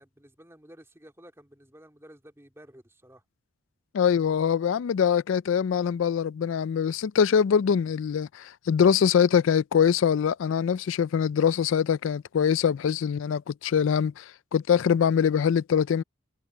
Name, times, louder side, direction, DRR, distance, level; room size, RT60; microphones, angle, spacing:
voice 1, 0.0-3.2, equal, 15° right, 2.9 m, -52 dB
voice 2, 3.9-16.0, left 7 dB, 75° left, 0.3 m, -23 dB
head